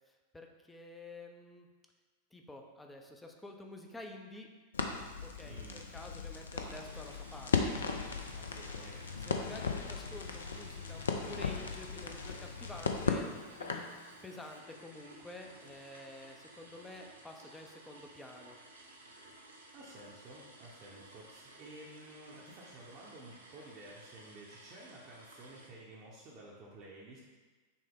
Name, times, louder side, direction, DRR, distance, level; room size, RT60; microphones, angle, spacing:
voice 1, 0.1-1.7 2.3-4.5 5.2-7.7 9.3-13.8 14.2-18.6, left 2 dB, 10° left, 2 dB, 0.4 m, -50 dB
Crackle, 4.7-14.0, left 5 dB, 70° left, 0.4 m, -37 dB
voice 2, 5.3-5.8 8.4-9.2 19.7-27.2, right 1 dB, 40° right, -5 dB, 0.7 m, -52 dB
sound 1, 6.5-25.7, right 2 dB, 75° right, 0.6 m, -56 dB
6.1 x 2.1 x 3.6 m, 1.4 s
figure-of-eight pair, 90°, 0 cm